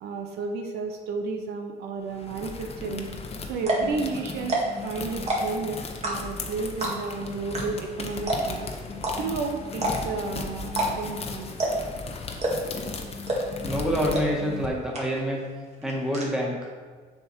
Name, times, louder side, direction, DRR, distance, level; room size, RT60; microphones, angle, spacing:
voice 1, 0.0-3.1 3.4-8.7 9.2-11.6, right 4 dB, 75° right, 4 dB, 0.9 m, -32 dB
sound 1, 2.0-14.7, left 4 dB, 35° left, 1.0 m, -36 dB
sound 2, 3.1-3.2 3.6-3.9 4.4-4.8 5.1-5.6 6.0-6.4 6.8-7.1 7.5-7.6 7.9-8.0 8.3-8.6 9.0-9.1 9.7-10.2 10.7-10.9 11.1-11.2 11.6-11.9 12.4-12.8 13.3-13.6 14.1-14.2 14.6-14.7 14.9-15.4 15.6-16.2, right 2 dB, 40° right, 1.9 m, -27 dB
voice 2, 13.6-15.4 15.8-16.7, equal, 5° right, -2 dB, 1.8 m, -27 dB
6.9 x 5.8 x 4.6 m, 1.5 s
cardioid pair, 110°, 17 cm